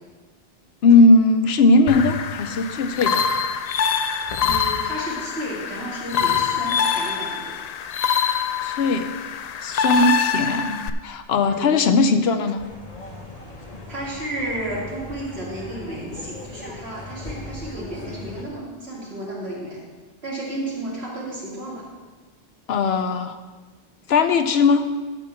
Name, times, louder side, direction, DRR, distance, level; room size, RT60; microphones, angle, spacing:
voice 1, 0.8-3.3 8.6-9.1 9.6-12.7 22.7-23.4 24.1-24.8, left 3 dB, 80° left, 9 dB, 1.0 m, -18 dB
sound 1, 1.9-10.9, left 6 dB, 55° left, 0.5 m, -24 dB
voice 2, 4.4-7.6 11.4-11.7 13.9-19.8 20.2-21.9, right 1 dB, 80° right, -5 dB, 3.1 m, -32 dB
sound 2, 12.6-18.4, left 2 dB, 40° left, 1.3 m, -39 dB
11.0 x 4.7 x 7.2 m, 1.4 s
omnidirectional pair, 1.0 m